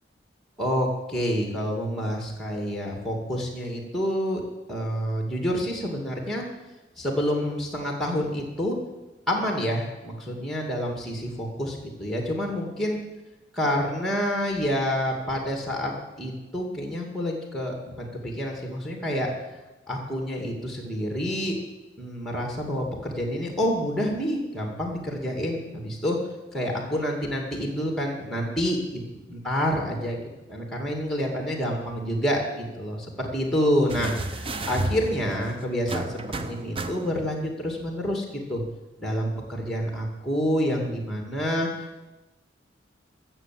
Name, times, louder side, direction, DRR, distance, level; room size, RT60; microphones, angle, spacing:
voice 1, 0.6-4.4 4.7-6.4 7.0-8.8 9.3-13.0 13.6-15.9 16.2-19.3 19.9-21.6 22.0-26.2 26.5-29.0 29.3-30.2 30.5-38.6 39.0-42.0, equal, ahead, 1 dB, 2.1 m, -28 dB
sound 1, 33.9-37.4 38.6-38.7, right 2 dB, 30° right, 0.6 m, -33 dB
15.0 x 7.2 x 7.5 m, 1.1 s
head